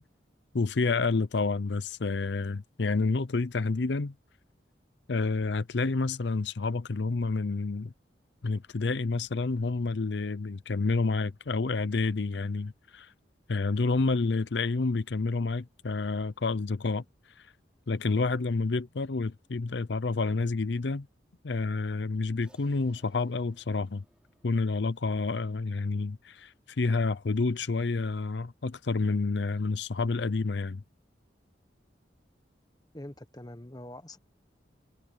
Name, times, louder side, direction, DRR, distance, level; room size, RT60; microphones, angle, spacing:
voice 1, 0.5-4.1 5.1-7.9 8.4-13.1 13.5-17.0 17.4-17.5 17.9-21.1 21.4-24.0 24.4-30.8, left 3 dB, 75° left, 0.6 m, -29 dB
Crash cymbal, 22.4-27.0, equal, 5° right, 4.4 m, -67 dB
voice 2, 32.9-34.2, left 1 dB, 20° left, 1.1 m, -44 dB
head